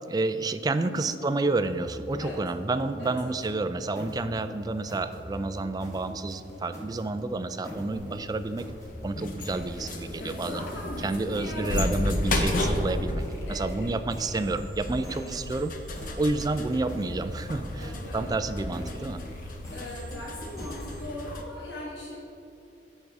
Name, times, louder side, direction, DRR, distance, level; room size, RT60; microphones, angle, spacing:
voice 1, 0.1-8.7 9.0-10.6 11.0-15.7 16.2-19.2, right 3 dB, 20° right, 10 dB, 0.3 m, -30 dB
voice 2, 0.8-1.2 2.2-2.4 3.0-3.3 10.2-11.9 13.5-14.0 17.8-18.3 19.7-22.2, left 1 dB, 90° left, -4 dB, 1.2 m, -39 dB
sound 1, 1.6-21.0, equal, 20° left, 1.2 m, -42 dB
sound 2, 7.9-21.4, left 1 dB, 50° left, 0.8 m, -33 dB
14.0 x 5.4 x 3.5 m, 2.7 s
head